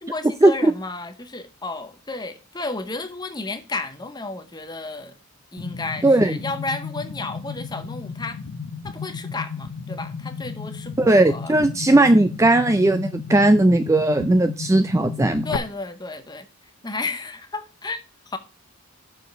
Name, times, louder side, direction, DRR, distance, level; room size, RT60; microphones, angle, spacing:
voice 1, 0.0-5.2 5.5-8.4 8.8-11.6 15.4-16.5 16.8-18.0 18.3-18.4, left 3 dB, 20° left, 0.8 m, -32 dB
sound 1, 5.6-15.6, left 5 dB, 90° left, 0.6 m, -34 dB
voice 2, 6.0-6.3 11.0-15.4, right 2 dB, 15° right, 0.3 m, -17 dB
6.9 x 5.0 x 6.8 m
head